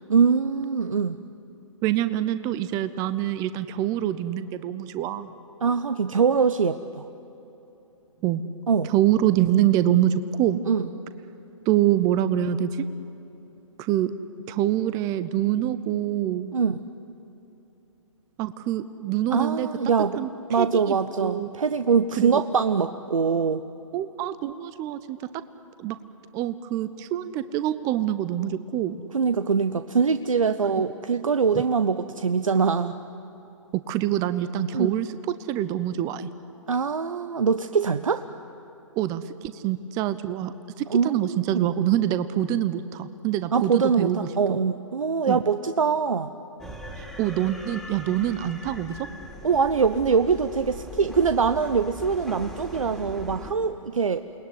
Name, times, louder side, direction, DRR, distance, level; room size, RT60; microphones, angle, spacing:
voice 1, 0.1-1.2 5.6-7.0 8.7-8.9 10.7-10.8 16.5-16.8 19.3-20.2 20.5-23.6 29.1-32.9 34.7-34.9 36.7-38.2 40.9-41.7 43.5-46.3 49.4-54.2, right 5 dB, 75° right, 11 dB, 0.9 m, -23 dB
voice 2, 1.8-5.3 8.2-8.4 8.8-10.6 11.7-12.8 13.8-14.1 14.5-16.6 18.4-19.7 20.2-21.5 22.1-22.4 23.9-25.2 25.8-26.0 26.3-29.0 30.6-30.8 31.5-31.6 33.7-35.1 35.5-36.3 39.0-44.6 45.3-45.4 47.0-49.0, right 12 dB, 20° right, 13 dB, 0.7 m, -25 dB
sound 1, 46.6-53.5, equal, ahead, 2.6 m, -39 dB
28.5 x 20.0 x 9.6 m, 3.0 s
figure-of-eight pair, 135°, 17 cm